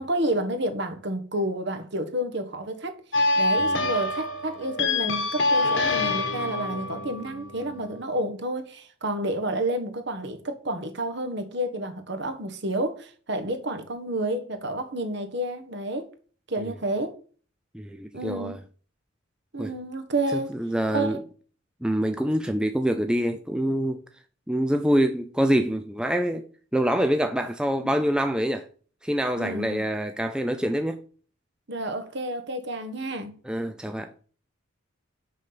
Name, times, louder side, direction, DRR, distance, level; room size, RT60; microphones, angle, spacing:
voice 1, 0.0-3.0 3.4-16.1 16.5-17.1 18.1-18.6 19.5-20.5 20.9-21.2 29.4-29.8 31.7-33.3, right 1 dB, 55° right, 1.4 m, -30 dB
sound 1, 3.1-8.2, left 2 dB, 60° left, 1.5 m, -26 dB
voice 2, 3.6-3.9 16.6-16.7 17.7-18.6 19.6-19.7 20.3-21.2 21.8-24.0 24.5-26.4 26.7-28.7 29.0-31.0 33.4-34.1, equal, 5° right, 0.5 m, -25 dB
6.4 x 5.9 x 6.7 m
head